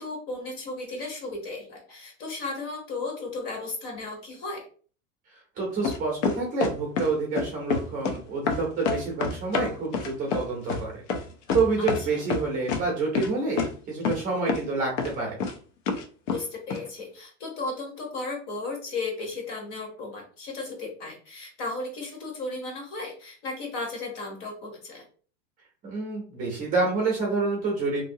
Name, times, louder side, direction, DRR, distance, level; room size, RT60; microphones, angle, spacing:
voice 1, 0.0-4.7 11.8-12.2 16.3-25.0, left 3 dB, 45° left, 1 dB, 1.0 m, -35 dB
voice 2, 5.6-11.0 11.5-15.4 25.8-28.0, right 3 dB, 20° right, -1 dB, 0.6 m, -28 dB
sound 1, 5.8-7.1 7.4-8.2 8.5-12.0 12.3-12.8 13.1-13.3 13.6-13.7 14.0-14.2 14.5-14.7 15.0-15.5 15.9-16.4 16.7-16.8, left 5 dB, 70° left, 0.7 m, -27 dB
2.7 x 2.6 x 2.7 m, 0.42 s
supercardioid pair, 175°, 39 cm